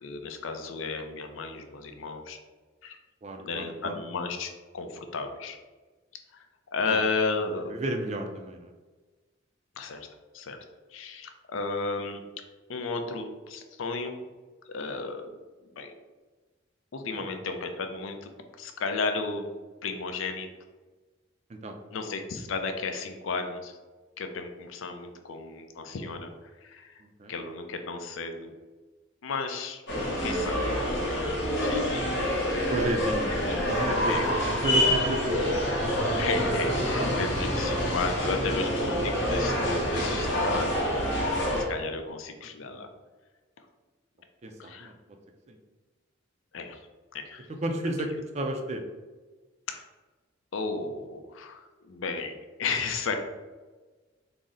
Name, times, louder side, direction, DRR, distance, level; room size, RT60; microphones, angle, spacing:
voice 1, 0.0-2.4 2.8-3.0 3.4-5.6 6.3-6.5 6.7-7.7 9.8-10.1 10.3-10.6 10.9-12.2 12.7-14.2 14.7-15.4 15.8-16.0 16.9-18.3 18.6-19.5 19.8-20.5 21.9-23.8 24.2-27.0 27.3-28.5 29.2-29.8 30.2-32.2 33.9-34.3 36.2-41.3 41.7-42.9 44.6-44.9 46.5-46.8 47.1-47.5 49.7-49.8 50.5-52.3 52.6-53.2, left 4 dB, 80° left, 6 dB, 0.5 m, -34 dB
voice 2, 3.2-3.9 6.9-7.0 7.6-8.7 17.1-17.3 21.5-21.8 27.0-27.3 32.7-33.4 33.7-35.7 42.6-42.9 44.4-44.9 45.5-45.6 47.6-48.8, right 1 dB, 35° right, 5 dB, 0.4 m, -32 dB
sound 1, 29.9-41.6, equal, 60° left, 1.0 m, -27 dB
4.0 x 2.0 x 3.7 m, 1.3 s
head